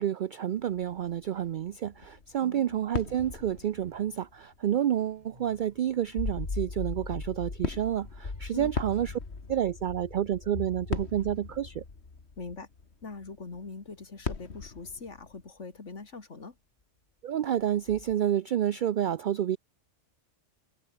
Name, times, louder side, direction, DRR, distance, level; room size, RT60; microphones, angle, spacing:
voice 1, 0.0-9.2 9.5-11.8 17.2-19.6, right 10 dB, 60° right, 0.5 m, -29 dB
sound 1, 0.6-15.5, left 5 dB, 65° left, 2.0 m, -42 dB
sound 2, 1.3-1.7 2.2-3.0 3.3-4.3 4.7-6.6 7.7-9.1, right 1 dB, 35° right, 5.6 m, -64 dB
voice 2, 2.4-2.8 8.5-8.7 12.4-12.7 13.0-16.5, left 4 dB, 85° left, 2.8 m, -42 dB
sound 3, 6.2-12.9 14.9-15.0 17.9-18.1, left 3 dB, 50° left, 2.2 m, -39 dB
omnidirectional pair, 1.2 m